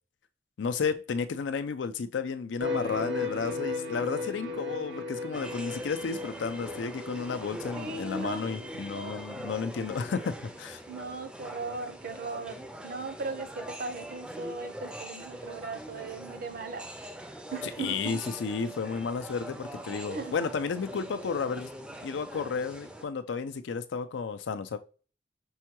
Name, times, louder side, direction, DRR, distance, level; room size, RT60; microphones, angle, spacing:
voice 1, 0.6-10.8 17.8-21.7 22.0-24.8, left 5 dB, 90° left, 0.4 m, -32 dB
sound 1, 2.6-9.3, left 3 dB, 80° right, 0.8 m, -37 dB
sound 2, 5.3-23.0, right 1 dB, 5° right, 0.4 m, -43 dB
voice 2, 7.7-8.7 9.0-9.2 10.9-16.9 17.5-18.0 20.1-20.3, right 3 dB, 55° right, 0.6 m, -38 dB
5.5 x 2.2 x 2.9 m
head